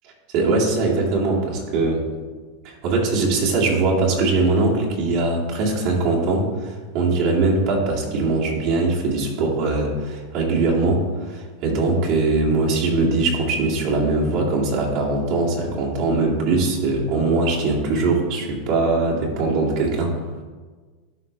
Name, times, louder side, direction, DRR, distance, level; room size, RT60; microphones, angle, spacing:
voice 1, 0.3-2.0 2.6-20.2, right 3 dB, 55° right, -3 dB, 2.2 m, -21 dB
11.5 x 4.6 x 3.2 m, 1.4 s
supercardioid pair, 130°, 0 cm